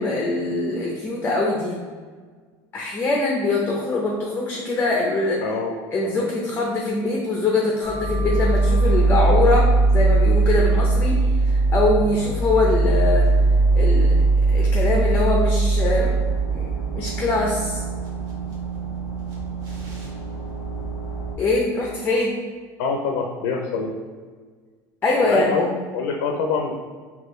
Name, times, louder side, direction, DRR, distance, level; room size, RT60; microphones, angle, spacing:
voice 1, 0.0-1.8 2.7-5.4 5.9-9.7 9.9-11.2 11.7-13.2 13.8-14.2 14.5-16.2 16.5-17.8 21.4-22.3 25.0-25.6, left 2 dB, 20° left, -2 dB, 0.6 m, -23 dB
voice 2, 5.4-5.8 6.0-6.3 22.8-24.0 25.2-26.7, left 5 dB, 75° left, 2 dB, 0.5 m, -25 dB
sound 1, 7.8-21.3, right 3 dB, 40° right, 1.2 m, -20 dB
4.4 x 2.8 x 3.1 m, 1.5 s
supercardioid pair, 130°, 9 cm